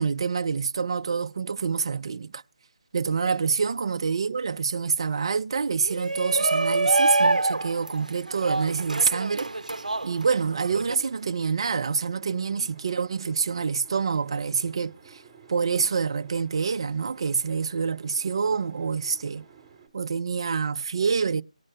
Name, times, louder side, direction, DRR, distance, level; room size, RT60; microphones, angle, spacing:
voice 1, 0.0-2.4 2.9-9.5 10.0-15.2 15.5-19.4 19.9-21.4, right 5 dB, 40° right, 0.5 m, -26 dB
Shout, 5.8-10.9, right 2 dB, 90° right, 0.6 m, -26 dB
sound 1, 8.2-19.9, right 6 dB, 5° right, 2.5 m, -52 dB
19.0 x 9.6 x 2.2 m
figure-of-eight pair, 160°, 4 cm